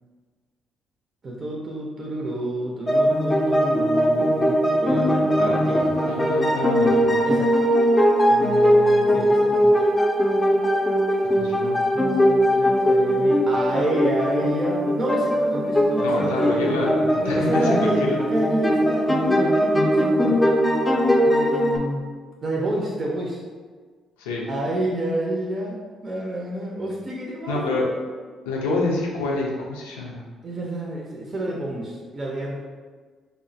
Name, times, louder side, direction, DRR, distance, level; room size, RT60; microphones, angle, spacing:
voice 1, 1.2-5.8 7.2-7.5 9.1-9.7 11.9-16.7 17.2-20.4 21.2-22.0 22.4-23.4 24.5-25.8 26.0-27.8 30.4-32.8, right 1 dB, 40° right, -2 dB, 0.5 m, -29 dB
sound 1, 2.9-21.8, equal, 20° left, 0.5 m, -20 dB
voice 2, 5.4-7.2 8.3-9.2 11.3-11.8 16.0-18.3 24.2-24.5 27.5-27.9 28.5-30.2, left 2 dB, 85° left, -3 dB, 0.5 m, -28 dB
3.4 x 2.0 x 2.6 m, 1.5 s
hypercardioid pair, 50°, 0 cm